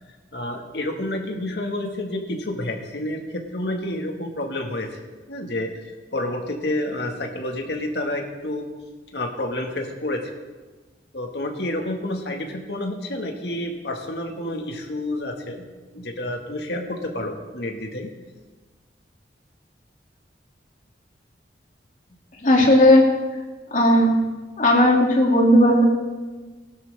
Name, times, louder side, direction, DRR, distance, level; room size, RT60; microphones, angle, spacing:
voice 1, 0.3-5.0 5.3-8.7 9.1-10.3 11.1-15.7 15.9-18.1, left 1 dB, 70° left, 2 dB, 2.1 m, -29 dB
voice 2, 22.4-23.0 23.7-24.1 24.6-25.9, left 1 dB, 45° left, -1 dB, 2.8 m, -15 dB
20.5 x 12.5 x 3.7 m, 1.3 s
head